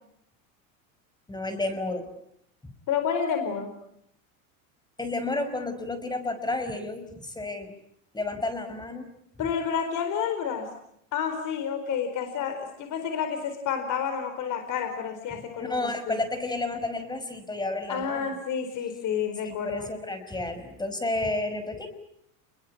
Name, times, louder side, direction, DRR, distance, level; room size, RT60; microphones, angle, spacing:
voice 1, 1.3-2.1 5.0-7.7 8.1-9.1 15.6-18.3 19.4-21.9, left 2 dB, 10° left, 8 dB, 5.4 m, -31 dB
voice 2, 2.9-3.7 9.4-10.7 11.1-16.2 17.9-19.9, left 7 dB, 50° left, 7 dB, 4.5 m, -30 dB
29.0 x 22.0 x 8.7 m, 0.75 s
supercardioid pair, 115°, 40 cm